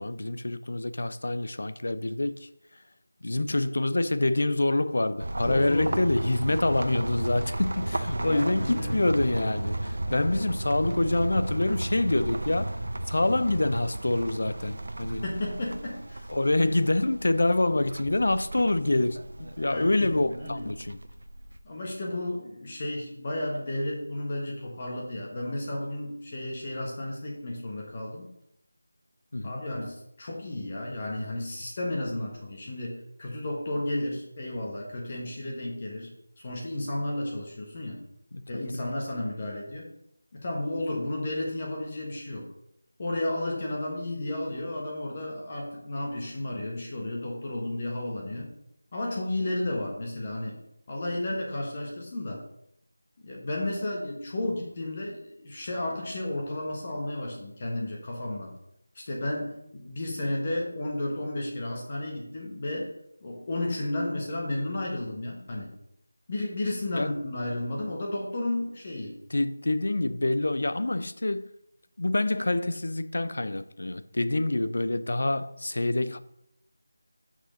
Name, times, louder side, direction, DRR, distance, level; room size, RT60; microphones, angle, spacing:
voice 1, 0.0-2.5 3.2-12.8 13.1-15.2 16.3-21.0 29.3-29.6 38.3-38.9 66.9-67.1 69.3-71.5 72.0-76.2, left 2 dB, 55° left, 0.6 m, -26 dB
sound 1, 5.2-21.6, right 1 dB, 65° right, 0.8 m, -34 dB
voice 2, 5.4-6.0 8.2-9.0 15.2-16.3 19.7-20.1 20.4-20.6 21.6-28.3 29.4-36.1 36.4-38.0 38.5-39.8 40.3-42.5 43.0-48.5 48.9-50.6 50.9-52.4 53.2-58.5 58.9-62.9 63.2-65.7 66.3-69.1, left 1 dB, 25° left, 1.4 m, -33 dB
6.3 x 6.3 x 6.7 m
figure-of-eight pair, 180°, 0 cm